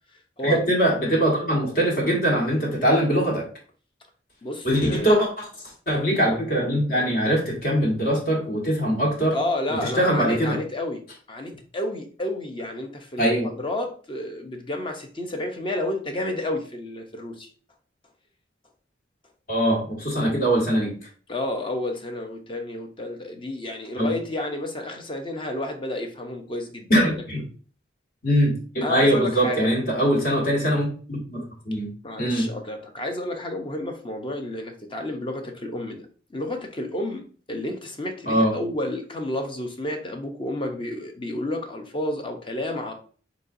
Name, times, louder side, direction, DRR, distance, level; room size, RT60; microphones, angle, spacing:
voice 1, 0.4-3.5 4.6-5.5 5.9-9.3 9.7-10.6 13.2-13.5 19.5-20.9 24.0-24.1 26.9-27.4 28.2-31.9 32.2-32.4 38.3-38.5, equal, 50° left, -1 dB, 1.5 m, -22 dB
voice 2, 4.4-5.2 9.3-11.0 11.3-17.5 21.3-26.9 27.3-27.4 28.8-29.7 32.0-42.9, left 1 dB, 25° left, 4 dB, 0.6 m, -31 dB
4.1 x 3.9 x 2.5 m, 0.41 s
head